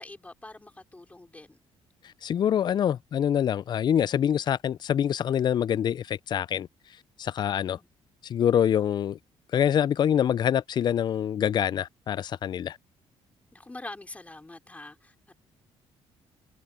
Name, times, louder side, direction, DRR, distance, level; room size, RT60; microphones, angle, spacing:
voice 1, 0.0-1.6 7.5-7.9 13.5-15.3, left 2 dB, 15° left, 4.8 m, -45 dB
voice 2, 2.2-6.7 7.2-7.8 8.2-9.2 9.5-12.8, left 9 dB, 45° left, 0.3 m, -25 dB
cardioid pair, 115°, 11 cm